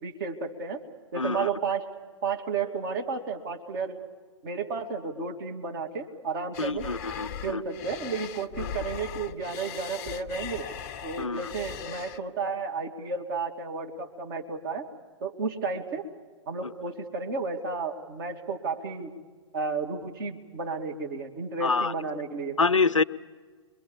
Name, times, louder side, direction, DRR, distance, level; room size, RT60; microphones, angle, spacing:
voice 1, 0.0-0.8 1.1-1.9 2.2-4.0 4.4-6.9 7.4-10.7 11.0-14.9 15.2-16.0 16.5-19.1 19.5-22.6, right 4 dB, 45° right, 3 dB, 2.4 m, -32 dB
voice 2, 1.2-1.5 6.6-7.6 11.2-11.4 21.6-21.9 22.6-23.0, left 4 dB, 80° left, 16 dB, 0.6 m, -26 dB
sound 1, 6.5-12.2, left 9 dB, 30° left, 0.6 m, -39 dB
28.0 x 22.0 x 7.2 m, 1.5 s
figure-of-eight pair, 115°, 16 cm